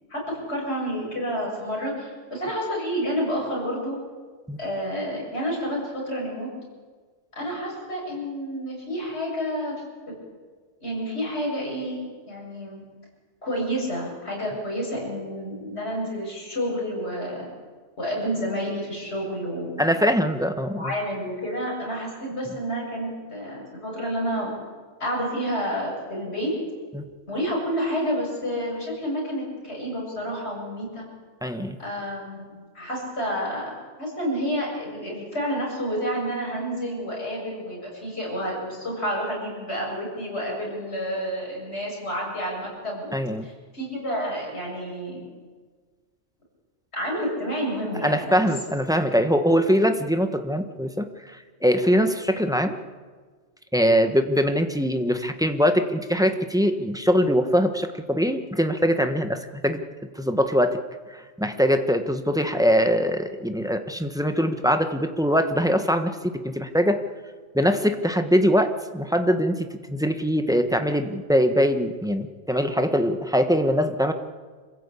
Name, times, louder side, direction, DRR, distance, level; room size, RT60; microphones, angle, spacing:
voice 1, 0.1-4.0 4.6-6.5 7.4-9.7 10.8-12.8 13.4-17.5 18.0-19.9 20.7-24.5 25.0-26.5 27.3-31.0 31.8-32.5 32.7-33.7 34.0-43.1 43.4-45.2 46.9-48.5, equal, 55° left, -3 dB, 7.8 m, -29 dB
voice 2, 19.8-20.9 26.9-27.0 31.4-31.8 43.1-43.5 48.0-51.1 51.6-52.8 53.7-59.8 60.2-60.8 61.1-67.0 67.5-74.1, equal, 5° right, 7 dB, 1.2 m, -22 dB
26.5 x 15.5 x 8.5 m, 1.5 s
omnidirectional pair, 1.3 m